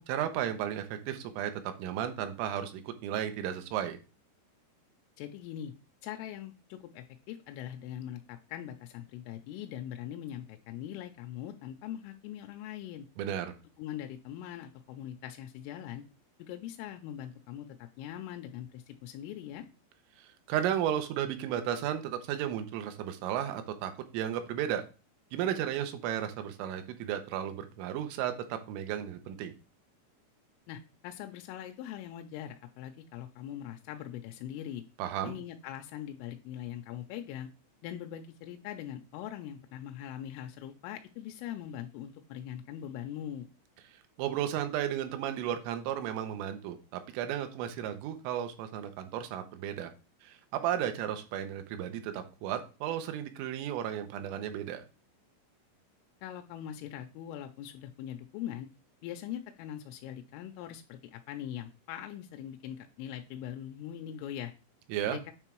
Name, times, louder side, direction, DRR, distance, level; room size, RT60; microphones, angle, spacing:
voice 1, 0.0-4.0 13.2-13.5 20.2-24.8 25.3-29.5 35.0-35.4 44.2-49.9 50.2-54.8 64.9-65.2, right 10 dB, 90° right, 8 dB, 3.4 m, -34 dB
voice 2, 5.2-5.7 6.0-13.1 13.8-16.0 16.4-19.7 30.7-34.8 35.2-37.5 37.8-43.5 56.2-58.7 59.0-64.5 65.1-65.3, left 11 dB, 85° left, 5 dB, 3.2 m, -42 dB
8.9 x 3.7 x 4.5 m, 0.32 s
omnidirectional pair, 5.7 m